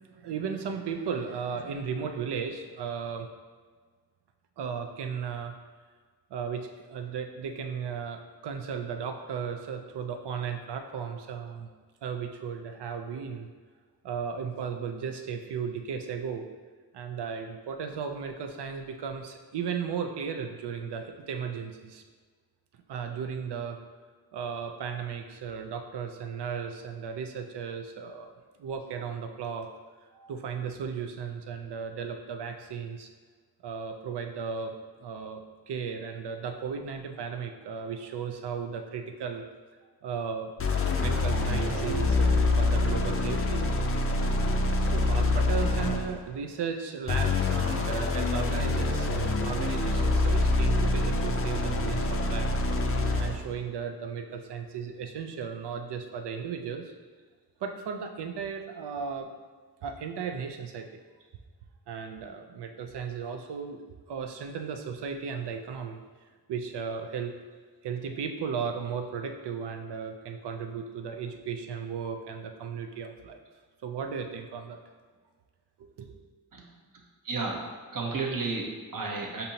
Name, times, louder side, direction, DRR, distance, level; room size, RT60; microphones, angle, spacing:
voice 1, 0.1-3.3 4.6-5.5 6.3-11.7 12.0-13.5 14.0-16.5 16.9-22.0 22.9-23.8 24.3-28.3 28.6-29.7 30.1-33.1 33.6-34.7 35.0-39.4 40.0-40.5 41.0-43.8 44.9-52.5 53.2-56.9 57.6-59.3 59.8-60.9 61.9-66.0 66.5-67.3 67.8-73.4 73.8-74.8 75.8-76.1, right 6 dB, 85° right, 5 dB, 0.6 m, -35 dB
sound 1, 40.6-46.2 47.1-53.5, left 2 dB, 35° left, 0.4 m, -26 dB
voice 2, 77.2-77.6 77.9-79.4, right 3 dB, 55° right, 0 dB, 0.9 m, -32 dB
6.6 x 2.7 x 2.8 m, 1.5 s
wide cardioid pair, 105°, 40 cm